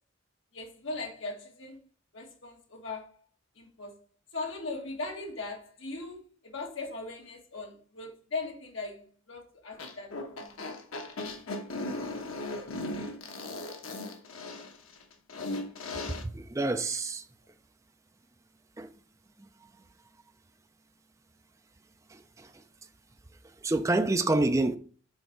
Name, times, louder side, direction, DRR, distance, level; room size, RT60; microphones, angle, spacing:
voice 1, 0.5-1.8 2.1-3.1 3.6-4.0 4.3-10.5, left 3 dB, 65° left, 1.7 m, -39 dB
sound 1, 9.7-16.2, left 2 dB, 80° left, 1.2 m, -37 dB
voice 2, 16.1-17.3 18.8-18.9 22.1-22.6 23.4-24.8, right 2 dB, 15° right, 0.4 m, -28 dB
6.5 x 4.1 x 4.6 m
head